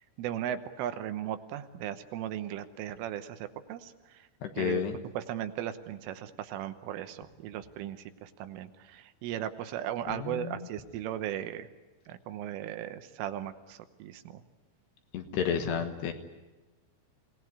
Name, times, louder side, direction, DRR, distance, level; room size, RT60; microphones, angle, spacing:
voice 1, 0.0-4.3 4.6-4.8 5.2-11.7 12.1-14.4, right 11 dB, 80° right, 9 dB, 3.5 m, -37 dB
voice 2, 4.4-5.0 10.1-10.7 15.1-16.1, left 7 dB, 70° left, 6 dB, 3.0 m, -31 dB
26.5 x 18.5 x 9.7 m, 1.1 s
omnidirectional pair, 5.8 m